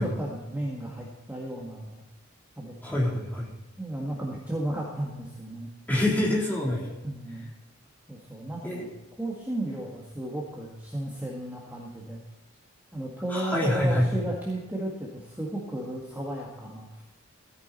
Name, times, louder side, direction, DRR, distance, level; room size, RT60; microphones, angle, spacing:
voice 1, 0.0-2.0 2.6-3.1 3.8-5.7 7.0-7.5 8.1-8.9 9.2-12.2 12.9-16.9, right 1 dB, 10° right, -4 dB, 1.8 m, -34 dB
voice 2, 2.8-3.5 5.9-6.9 8.6-8.8 13.3-14.2, left 1 dB, 10° left, -6 dB, 3.6 m, -26 dB
14.5 x 9.5 x 4.3 m, 1.0 s
head